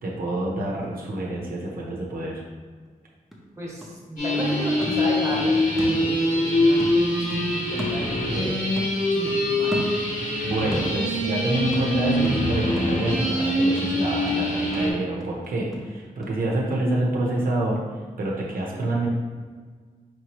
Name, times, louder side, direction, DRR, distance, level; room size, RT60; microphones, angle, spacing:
voice 1, 0.0-2.4 10.4-17.8 18.2-19.1, right 2 dB, 80° right, -3 dB, 0.8 m, -27 dB
sound 1, 2.9-3.0 3.3-6.5 6.8-8.5 8.8-10.4 10.7-16.4 16.7-16.8, equal, ahead, 0.6 m, -37 dB
voice 2, 3.6-8.7 9.1-9.8, equal, 20° right, -5 dB, 1.0 m, -33 dB
sound 2, 4.2-14.9, left 1 dB, 65° left, 1.2 m, -24 dB
4.6 x 2.9 x 3.0 m, 1.5 s
wide cardioid pair, 150°, 15 cm